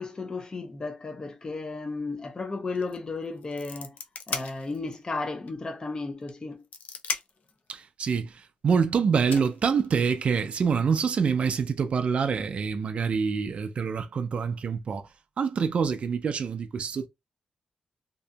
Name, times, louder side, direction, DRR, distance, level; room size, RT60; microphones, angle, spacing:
voice 1, 0.0-4.0 4.3-6.6, left 3 dB, 35° left, 0.5 m, -34 dB
sound 1, 2.8-3.0 3.3-5.0 5.5-5.6 6.3-7.5 8.7-8.8 9.3-10.3, left 6 dB, 85° left, 0.4 m, -36 dB
voice 2, 7.7-15.1 15.4-17.1, right 6 dB, 55° right, 0.3 m, -26 dB
2.6 x 2.6 x 2.2 m
cardioid pair, 75°, 2 cm